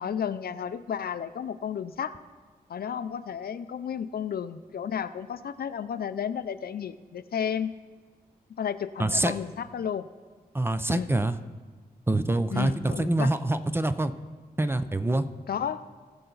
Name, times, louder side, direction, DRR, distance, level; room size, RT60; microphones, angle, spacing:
voice 1, 0.0-2.2 2.7-7.7 8.6-10.1 10.9-11.1 12.5-13.3 15.5-15.9, left 8 dB, 70° left, 13 dB, 0.5 m, -32 dB
voice 2, 9.0-9.3 10.5-11.4 12.1-14.1 14.6-15.3, right 2 dB, 15° right, 11 dB, 0.5 m, -25 dB
19.0 x 6.8 x 3.9 m, 1.4 s
wide cardioid pair, 100°, 16 cm